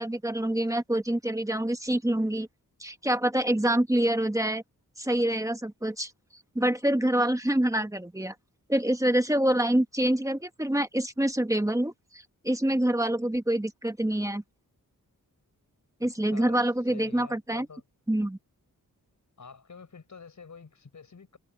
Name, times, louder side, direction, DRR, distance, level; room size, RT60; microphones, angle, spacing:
voice 1, 0.0-2.5 2.8-4.6 5.0-6.1 6.5-8.3 8.7-14.4 16.0-17.7 18.1-18.4, right 1 dB, 10° right, 1.3 m, -26 dB
voice 2, 16.0-16.6 16.9-17.8 19.4-21.4, left 5 dB, 55° left, 6.2 m, -48 dB
wide cardioid pair, 125°, 35 cm